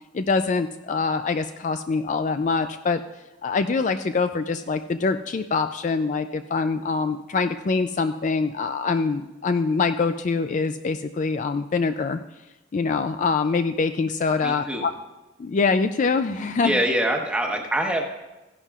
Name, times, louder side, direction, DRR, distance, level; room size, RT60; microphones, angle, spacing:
voice 1, 0.1-3.0 3.4-12.2 12.7-14.9 15.4-16.8, left 4 dB, 40° left, 8 dB, 0.4 m, -24 dB
voice 2, 14.4-14.9 16.6-18.1, right 1 dB, 5° right, 1 dB, 1.2 m, -24 dB
16.5 x 11.0 x 2.4 m, 1.0 s
head